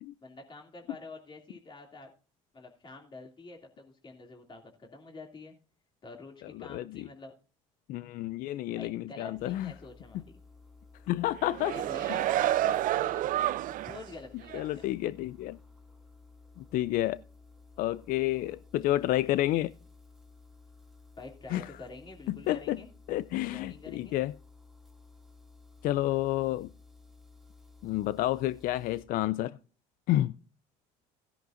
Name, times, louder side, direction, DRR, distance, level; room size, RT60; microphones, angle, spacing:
voice 1, 0.2-2.1 2.5-5.5 6.0-7.3 8.7-10.4 11.7-13.3 13.8-14.9 21.2-22.9 23.5-24.2, left 3 dB, 30° left, 2.8 m, -47 dB
voice 2, 6.6-7.1 7.9-9.7 11.1-11.7 12.1-12.2 14.5-15.6 16.6-17.2 17.8-19.7 21.5-21.7 22.3-22.8 23.1-24.3 25.8-26.7 27.8-29.6 30.1-30.3, left 15 dB, 65° left, 0.4 m, -30 dB
sound 1, 9.4-29.1, left 3 dB, ahead, 2.4 m, -55 dB
sound 2, 11.4-14.1 14.5-14.6, right 14 dB, 60° right, 0.5 m, -29 dB
16.5 x 10.5 x 2.6 m
supercardioid pair, 85°, 16 cm